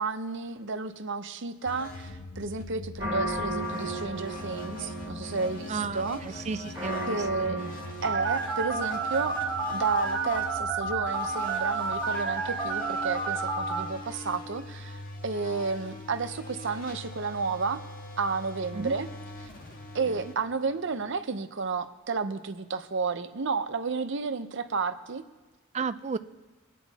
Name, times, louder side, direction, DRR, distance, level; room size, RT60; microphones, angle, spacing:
voice 1, 0.0-6.5 7.1-7.6 8.0-9.4 9.7-15.0 15.2-17.8 18.2-19.1 19.9-25.2, right 4 dB, 60° right, 8 dB, 0.7 m, -31 dB
sound 1, 1.7-21.2, left 2 dB, 40° left, 1.4 m, -42 dB
sound 2, 3.0-9.1, equal, 10° right, 2.8 m, -36 dB
voice 2, 5.7-7.7 18.7-19.0 20.1-20.3 25.7-26.2, right 5 dB, 30° right, 12 dB, 0.4 m, -34 dB
Telephone, 8.0-13.8, right 4 dB, 10° left, 2.6 m, -30 dB
23.5 x 9.2 x 4.1 m, 1.2 s
head